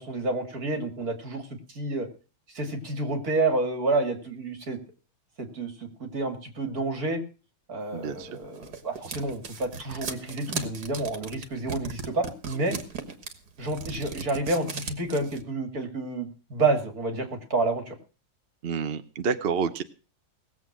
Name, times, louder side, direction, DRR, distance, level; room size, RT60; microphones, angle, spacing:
voice 1, 0.0-2.1 2.5-4.8 5.4-7.2 7.7-12.8 13.6-17.9, right 2 dB, 65° right, 6 dB, 3.0 m, -29 dB
voice 2, 7.9-8.3 18.6-19.8, right 6 dB, 45° right, 10 dB, 0.9 m, -28 dB
sound 1, 8.2-15.4, right 5 dB, 80° right, 2.2 m, -37 dB
19.0 x 7.8 x 6.1 m, 0.36 s
omnidirectional pair, 1.7 m